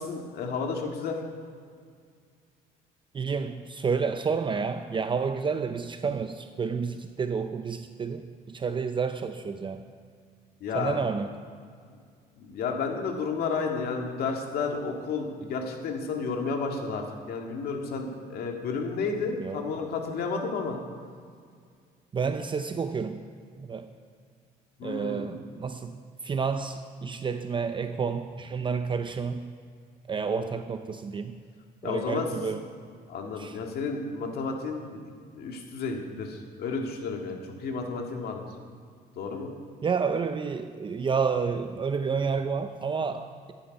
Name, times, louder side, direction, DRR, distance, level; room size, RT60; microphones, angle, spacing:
voice 1, 0.0-1.4 10.6-11.0 12.4-20.8 24.8-25.3 30.2-30.5 31.8-32.3 33.1-35.0 35.3-38.5 39.2-39.5, left 4 dB, 65° left, 2 dB, 2.0 m, -32 dB
voice 2, 3.1-9.8 10.7-11.3 19.4-19.7 22.1-23.2 23.6-23.9 24.8-29.5 30.1-31.4 31.8-32.6 33.4-33.6 39.8-43.5, right 5 dB, 30° right, 8 dB, 0.6 m, -30 dB
14.5 x 10.0 x 5.4 m, 2.1 s
cardioid pair, 110°, 17 cm